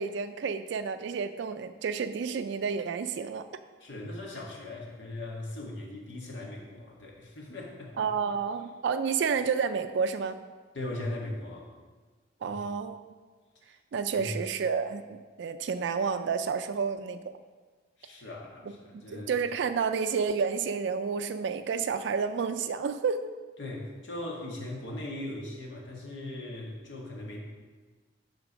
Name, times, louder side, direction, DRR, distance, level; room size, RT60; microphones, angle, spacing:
voice 1, 0.0-3.4 8.0-10.4 12.4-13.0 13.9-17.2 18.9-23.3, right 6 dB, 70° right, 10 dB, 0.4 m, -30 dB
voice 2, 3.8-8.1 10.7-11.7 12.5-12.6 13.6-13.8 14.1-14.3 18.0-19.3 23.6-27.4, left 1 dB, 75° left, -2 dB, 1.7 m, -39 dB
8.2 x 3.8 x 6.2 m, 1.4 s
head